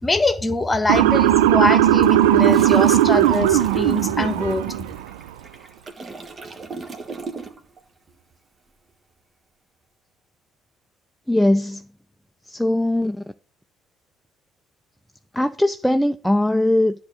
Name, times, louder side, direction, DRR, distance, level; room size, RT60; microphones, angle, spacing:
voice 1, 0.0-4.6, left 2 dB, 20° left, 1.3 m, -23 dB
Motor vehicle (road) / Siren, 0.9-5.0, right 12 dB, 75° right, 0.5 m, -17 dB
Toilet flush, 1.8-7.8 8.1-8.3, right 4 dB, 35° right, 1.4 m, -39 dB
voice 2, 11.3-11.9 12.4-13.3 15.3-16.9, left 1 dB, 5° left, 0.5 m, -20 dB
10.5 x 3.7 x 6.4 m
figure-of-eight pair, 50°, 0 cm